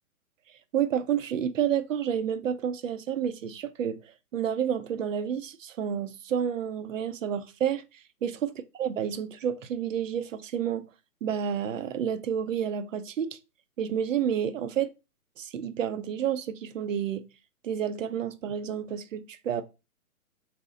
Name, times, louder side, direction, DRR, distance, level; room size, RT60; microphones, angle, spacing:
voice 1, 0.7-4.0 4.3-7.8 8.2-8.5 8.8-10.8 11.2-13.4 13.8-14.9 15.4-17.2 17.6-19.6, right 8 dB, 60° right, 0.6 m, -30 dB
4.2 x 2.1 x 3.8 m
figure-of-eight pair, 135°, 44 cm